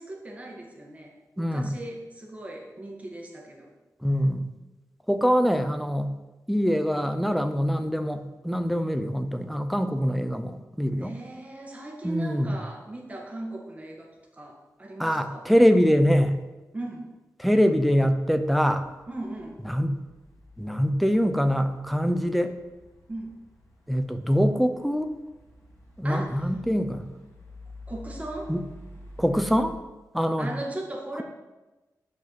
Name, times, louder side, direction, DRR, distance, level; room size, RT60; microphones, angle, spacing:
voice 1, 0.0-3.7 11.0-15.5 16.7-17.1 19.1-19.6 23.1-23.3 26.0-26.4 27.9-28.5 30.4-31.2, right 1 dB, 20° right, 0 dB, 1.8 m, -38 dB
voice 2, 1.4-1.7 4.0-4.5 5.1-6.1 6.5-11.1 12.0-12.6 15.0-16.4 17.4-18.9 19.6-19.9 20.6-22.5 23.9-25.1 26.0-27.1 28.5-28.6 29.2-29.8 30.1-30.5, equal, ahead, 8 dB, 0.7 m, -24 dB
sound 1, 18.1-29.7, left 1 dB, 30° left, 2.3 m, -49 dB
9.7 x 5.0 x 7.8 m, 1.1 s
wide cardioid pair, 155°, 6 cm